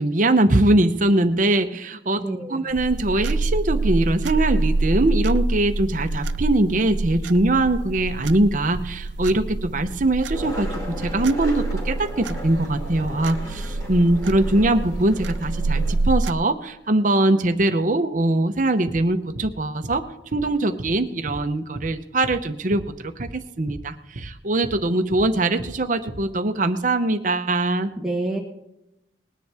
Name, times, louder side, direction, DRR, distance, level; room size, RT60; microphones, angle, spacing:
voice 1, 0.0-2.2 2.5-10.7 11.0-20.0 20.3-27.9, right 2 dB, 45° right, 8 dB, 0.8 m, -22 dB
voice 2, 2.2-2.6 28.0-28.4, right 2 dB, 5° right, -2 dB, 1.6 m, -27 dB
sound 1, 2.7-16.3, right 2 dB, 80° right, 0.6 m, -27 dB
Skateboard, 10.3-16.0, left 1 dB, 20° left, 3.2 m, -37 dB
sound 2, 18.9-19.0 19.4-19.5 19.8-20.0 20.3-20.5 20.8-21.0 21.3-21.4 21.7-21.9 22.2-22.4 22.7-22.9 23.2-23.4 23.7-23.8 24.2-24.3 24.6-24.8 25.1-25.3 25.6-25.8 26.1-26.2, right 1 dB, 65° right, 1.0 m, -35 dB
20.5 x 10.0 x 3.5 m, 0.87 s
head